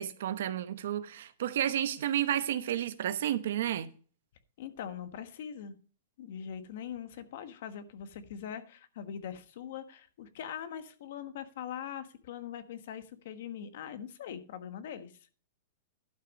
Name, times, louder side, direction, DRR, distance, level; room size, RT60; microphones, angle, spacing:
voice 1, 0.0-3.9, right 11 dB, 65° right, 0.9 m, -31 dB
voice 2, 4.6-5.7 6.2-15.1, left 8 dB, 55° left, 1.2 m, -42 dB
12.0 x 6.0 x 5.3 m
supercardioid pair, 170°, 0 cm